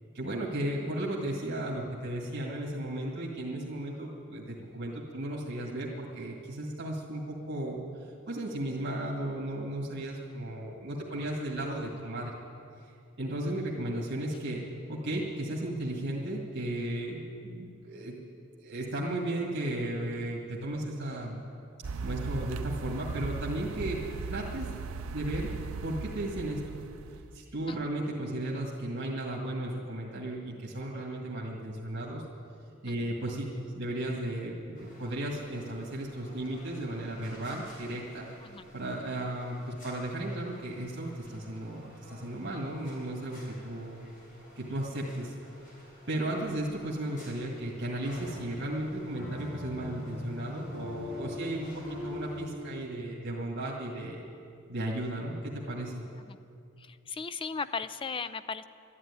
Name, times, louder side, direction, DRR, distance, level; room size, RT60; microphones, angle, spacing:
voice 1, 0.1-7.8 8.3-12.3 13.2-14.6 14.9-18.2 18.6-21.4 22.0-24.0 24.3-24.7 25.1-25.5 25.8-26.7 27.3-32.2 32.8-38.3 38.7-44.1 44.6-45.3 46.1-54.3 54.7-55.9, right 1 dB, 60° right, -3 dB, 1.9 m, -35 dB
sound 1, 21.8-27.4, right 4 dB, 80° right, 0.5 m, -38 dB
sound 2, 34.8-52.5, left 1 dB, 45° left, 4.0 m, -46 dB
voice 2, 56.8-58.6, left 5 dB, 25° left, 14 dB, 0.4 m, -36 dB
13.0 x 11.0 x 9.7 m, 2.4 s
head